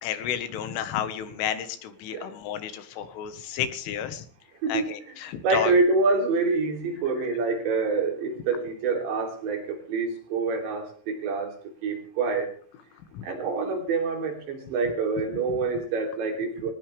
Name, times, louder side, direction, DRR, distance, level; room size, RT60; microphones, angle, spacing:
voice 1, 0.0-4.3 4.7-5.7 13.1-13.3 15.5-15.6, left 9 dB, 80° left, 10 dB, 4.0 m, -31 dB
voice 2, 5.4-11.5 11.8-12.5 13.2-16.7, right 4 dB, 65° right, 3 dB, 5.4 m, -26 dB
20.5 x 19.0 x 3.5 m, 0.42 s
omnidirectional pair, 5.6 m